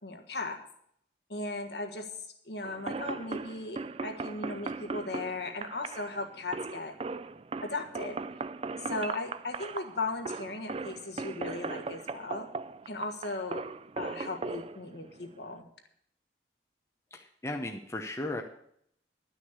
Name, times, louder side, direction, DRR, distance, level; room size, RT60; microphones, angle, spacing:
voice 1, 0.0-0.6 1.3-2.1 2.4-6.9 7.6-8.2 8.9-12.5 12.9-13.6 14.0-15.7, left 2 dB, 60° left, 4 dB, 1.6 m, -37 dB
sound 1, 2.6-15.6, right 4 dB, 30° right, 0.4 m, -38 dB
voice 2, 17.1-18.4, left 1 dB, 15° left, 2 dB, 0.8 m, -36 dB
11.5 x 6.2 x 8.2 m, 0.70 s
head